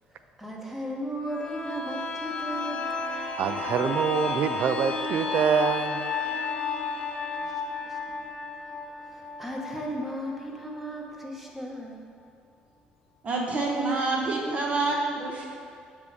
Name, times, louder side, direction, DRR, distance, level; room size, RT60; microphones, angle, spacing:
voice 1, 0.4-2.9 7.4-7.5 7.9-8.0 9.1-12.0, equal, 10° right, -2 dB, 1.2 m, -35 dB
sound 1, 1.3-10.8 11.2-11.3, left 4 dB, 30° left, 0.7 m, -33 dB
voice 2, 3.4-6.1, right 7 dB, 60° right, 10 dB, 0.4 m, -25 dB
voice 3, 13.2-15.5, right 3 dB, 40° right, -1 dB, 1.1 m, -27 dB
7.4 x 3.5 x 4.7 m, 2.3 s
supercardioid pair, 80°, 3 cm